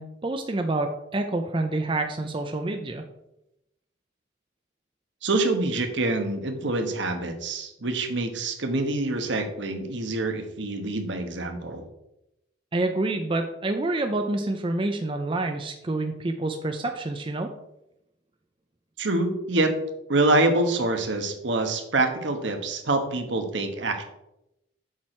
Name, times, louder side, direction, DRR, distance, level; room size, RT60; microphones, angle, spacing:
voice 1, 0.0-3.0 12.7-17.5, right 2 dB, 25° right, 5 dB, 0.5 m, -28 dB
voice 2, 5.2-11.8 19.0-19.7 20.1-24.0, right 2 dB, 70° right, 6 dB, 1.2 m, -26 dB
7.4 x 6.2 x 4.3 m, 0.87 s
head